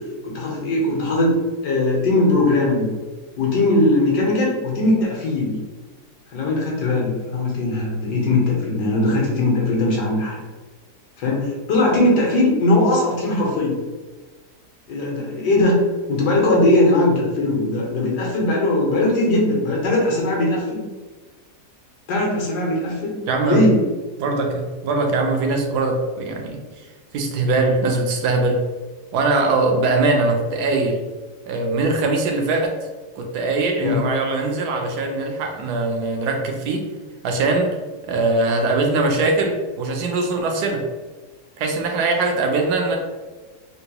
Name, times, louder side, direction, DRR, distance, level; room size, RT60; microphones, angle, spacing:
voice 1, 0.2-1.3 1.6-2.8 3.4-5.5 6.3-10.4 11.2-13.7 14.9-15.7 16.1-20.8 22.1-23.2 23.4-23.8 33.8-34.0, left 2 dB, 80° left, -2 dB, 1.5 m, -19 dB
voice 2, 23.3-23.7 24.2-26.8 27.1-28.6 29.1-31.0 31.5-32.7 33.2-36.8 37.2-37.7 38.0-40.8 41.6-43.0, right 3 dB, 75° right, 3 dB, 1.1 m, -21 dB
3.7 x 2.2 x 2.8 m, 1.3 s
omnidirectional pair, 1.8 m